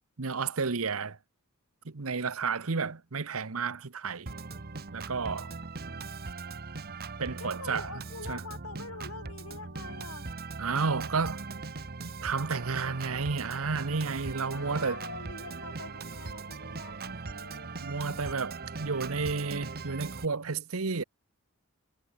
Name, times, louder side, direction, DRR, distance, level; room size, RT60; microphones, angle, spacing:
voice 1, 0.2-1.2 1.8-4.4 4.9-5.5 7.2-7.9 8.3-8.4 10.6-11.4 12.0-15.0 17.8-21.0, right 4 dB, 70° right, 1.0 m, -31 dB
Organ, 4.3-20.3, right 4 dB, 45° right, 1.1 m, -40 dB
voice 2, 7.4-10.3 14.5-18.4, left 3 dB, 80° left, 4.8 m, -45 dB
head